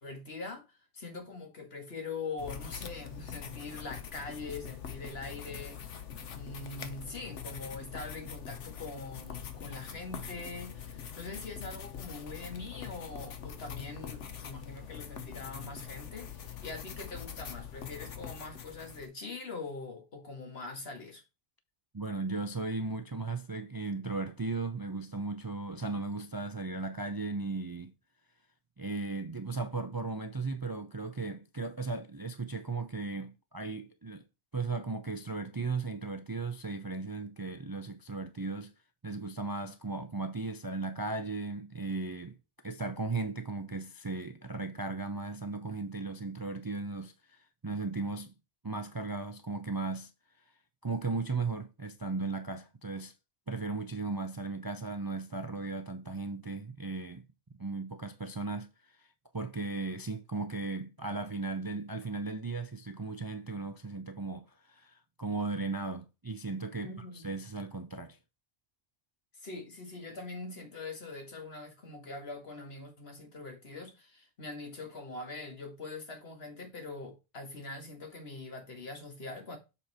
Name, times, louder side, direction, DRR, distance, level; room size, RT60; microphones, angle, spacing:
voice 1, 0.0-6.0 6.3-21.2 66.8-67.3 69.4-79.6, left 3 dB, 60° left, 2.1 m, -43 dB
sound 1, 2.4-19.1, left 8 dB, 85° left, 1.2 m, -43 dB
voice 2, 21.9-27.9 28.8-34.2 34.5-38.7 39.0-42.4 42.6-48.3 48.6-50.1 50.8-53.1 53.5-57.2 57.6-59.1 59.3-68.2, right 3 dB, 30° right, 0.4 m, -36 dB
7.2 x 4.4 x 4.2 m
omnidirectional pair, 1.2 m